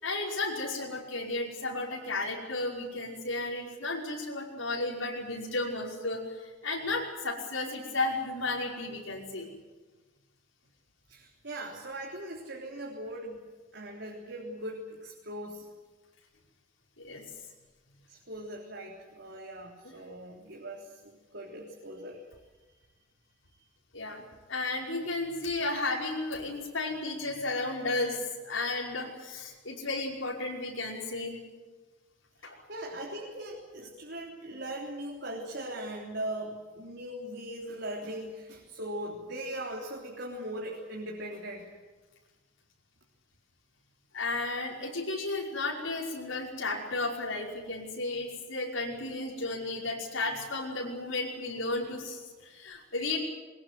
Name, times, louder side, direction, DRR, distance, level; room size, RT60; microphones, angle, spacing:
voice 1, 0.0-9.5 17.0-17.2 19.8-19.9 23.9-24.2 24.5-31.4 32.4-32.6 44.1-53.2, left 2 dB, 90° left, -2 dB, 5.5 m, -33 dB
voice 2, 11.1-13.4 13.7-15.7 18.1-22.2 32.4-41.7, right 1 dB, 60° right, -2 dB, 3.6 m, -40 dB
22.5 x 21.5 x 9.4 m, 1.3 s
head